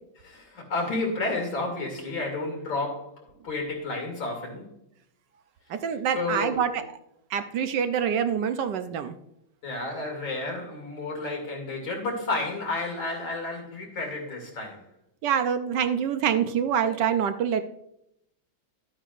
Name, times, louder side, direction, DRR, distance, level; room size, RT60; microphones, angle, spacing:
voice 1, 0.2-4.7 6.1-6.7 9.6-14.8, left 2 dB, 75° left, 3.3 m, -31 dB
voice 2, 5.7-6.8 7.3-9.2 15.2-17.6, right 8 dB, 70° right, 1.2 m, -26 dB
12.5 x 8.9 x 2.5 m
omnidirectional pair, 2.1 m